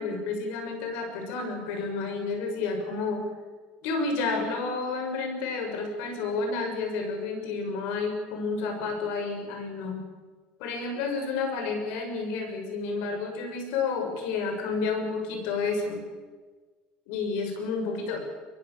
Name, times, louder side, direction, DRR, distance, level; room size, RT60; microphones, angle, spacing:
voice 1, 0.0-3.3 3.8-10.0 10.6-16.0 17.1-18.2, left 4 dB, 80° left, 4 dB, 6.9 m, -30 dB
23.0 x 22.5 x 7.2 m, 1.4 s
cardioid pair, 155°, 3 cm